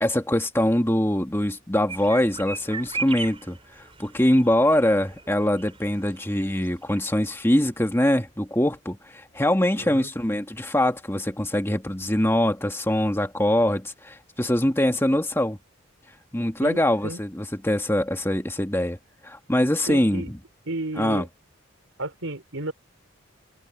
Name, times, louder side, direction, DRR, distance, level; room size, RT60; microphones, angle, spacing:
voice 1, 0.0-3.6 4.0-15.6 16.3-19.0 19.2-20.4 21.0-21.2, left 1 dB, 10° left, 1.8 m, -23 dB
sound 1, 1.9-7.0 7.3-7.4 7.7-7.8, right 4 dB, 25° right, 4.9 m, -38 dB
voice 2, 9.8-10.1 16.6-17.2 19.9-20.3 20.7-21.3 22.0-22.7, right 2 dB, 75° right, 3.9 m, -33 dB
head